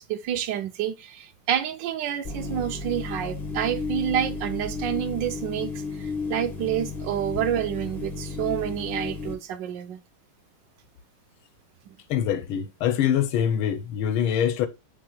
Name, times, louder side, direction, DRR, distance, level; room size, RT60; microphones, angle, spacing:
voice 1, 0.0-10.0, right 10 dB, 70° right, 1.2 m, -28 dB
sound 1, 2.2-9.3, left 3 dB, 20° left, 1.8 m, -33 dB
voice 2, 12.1-14.7, left 9 dB, 85° left, 1.6 m, -24 dB
8.9 x 4.8 x 2.3 m
omnidirectional pair, 2.2 m